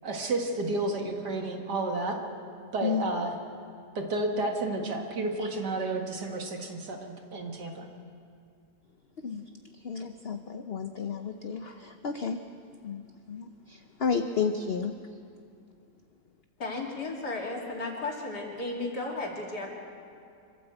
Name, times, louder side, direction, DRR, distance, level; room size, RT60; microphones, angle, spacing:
voice 1, 0.0-2.2 2.7-3.3 4.0-7.7, right 2 dB, 80° right, 2 dB, 2.5 m, -31 dB
voice 2, 9.8-12.4 12.8-13.0 13.3-14.9, left 6 dB, 50° left, 6 dB, 0.8 m, -32 dB
voice 3, 16.6-19.7, left 2 dB, 75° left, -1 dB, 3.6 m, -34 dB
25.5 x 13.0 x 8.0 m, 2.4 s
omnidirectional pair, 1.8 m